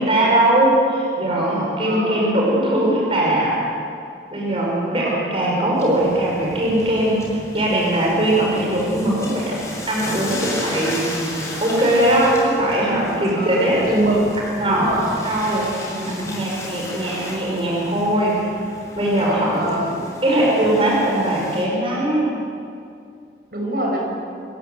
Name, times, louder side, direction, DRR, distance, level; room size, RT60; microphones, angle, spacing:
voice 1, 0.0-3.6 4.3-11.3 11.6-14.1 14.6-14.9 15.2-15.7 16.1-18.4 18.9-19.6 20.2-22.4, right 1 dB, 30° right, -3 dB, 5.9 m, -20 dB
voice 2, 1.8-2.3 4.7-5.4 8.1-8.6 13.3-14.3 14.6-15.2 15.9-16.4 19.5-20.1 23.5-24.0, right 1 dB, 55° right, -1 dB, 6.6 m, -25 dB
sound 1, 5.7-21.6, left 1 dB, 15° left, 6.9 m, -34 dB
28.5 x 17.0 x 8.4 m, 2.4 s
head